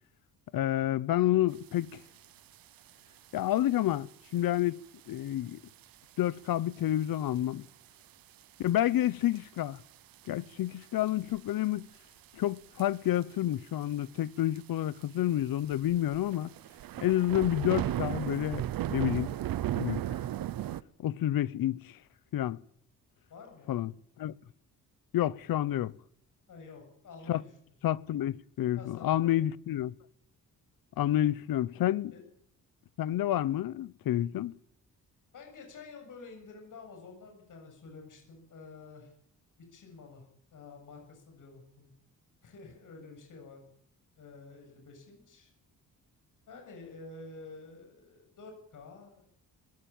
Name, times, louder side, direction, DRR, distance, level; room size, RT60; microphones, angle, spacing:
voice 1, 0.5-2.0 3.3-4.8 5.1-5.6 6.2-7.7 8.6-9.8 10.3-11.9 12.3-16.5 17.0-18.6 18.9-19.3 19.7-20.0 21.0-22.0 22.3-22.6 23.7-24.3 25.1-25.9 27.3-27.4 27.8-29.9 31.0-32.1 33.0-34.5, left 13 dB, 85° left, 0.9 m, -29 dB
sound 1, 2.2-2.3 2.5-2.9 3.6-3.8 4.4-4.5 5.1-5.2 5.5-5.6 5.8-5.9 7.0-7.3 7.7-7.8 8.7-8.8 9.4-9.8 10.1-10.3 10.8-11.5 12.6-12.8 13.2-13.3 13.5-13.6 13.8-13.9 14.6-14.7 15.0-15.1 15.7-20.8, right 12 dB, 90° right, 0.9 m, -34 dB
voice 2, 23.3-23.8 26.5-27.5 28.8-29.4 32.1-32.2 35.3-39.1 39.7-40.2 40.5-41.9 42.4-43.6 44.2-45.5 46.5-49.2, left 4 dB, 65° left, 7.5 m, -49 dB
21.0 x 16.5 x 8.9 m
wide cardioid pair, 140°, 34 cm